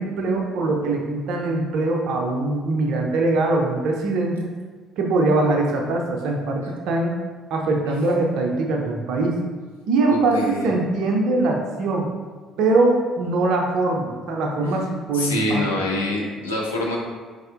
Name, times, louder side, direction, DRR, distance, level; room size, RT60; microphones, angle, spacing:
voice 1, 0.0-4.5 5.0-7.1 7.5-9.4 9.9-12.1 12.6-15.7, right 2 dB, 55° right, 1 dB, 0.5 m, -22 dB
voice 2, 10.1-10.8 15.1-17.0, left 1 dB, 80° left, -1 dB, 0.5 m, -25 dB
4.1 x 3.3 x 2.5 m, 1.4 s
figure-of-eight pair, 50°, 0 cm